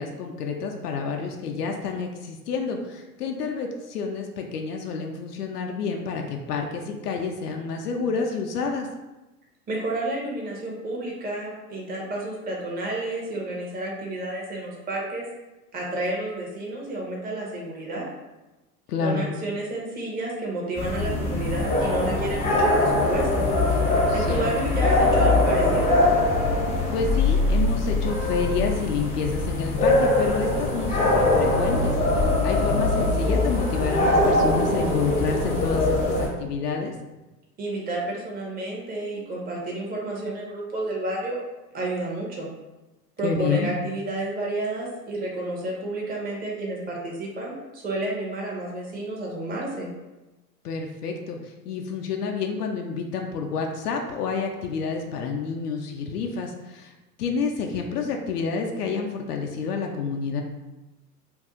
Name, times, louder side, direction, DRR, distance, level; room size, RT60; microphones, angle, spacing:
voice 1, 0.0-8.9 18.9-19.2 24.1-24.5 26.9-36.9 43.2-43.8 50.6-56.9 57.2-60.4, left 5 dB, 75° left, 2 dB, 0.6 m, -29 dB
voice 2, 9.7-15.3 15.7-18.0 19.0-23.5 24.1-25.9 37.6-41.4 41.7-42.5 43.2-49.9, right 2 dB, 20° right, -3 dB, 0.8 m, -30 dB
sound 1, 20.8-36.3, left 2 dB, 15° left, 0.7 m, -22 dB
2.6 x 2.3 x 3.7 m, 1.1 s
figure-of-eight pair, 85°, 48 cm